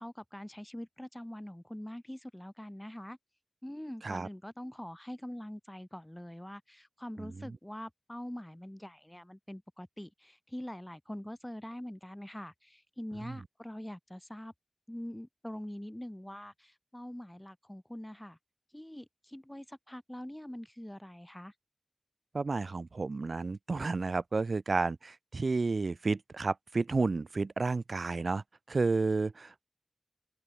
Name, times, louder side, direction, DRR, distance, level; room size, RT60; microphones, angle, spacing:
voice 1, 0.0-3.2 3.6-14.5 14.9-18.4 18.7-21.5, left 1 dB, 10° left, 2.0 m, -44 dB
voice 2, 7.2-7.6 13.2-13.4 22.3-29.6, right 3 dB, 90° right, 1.1 m, -31 dB
wide cardioid pair, 65°, 0 cm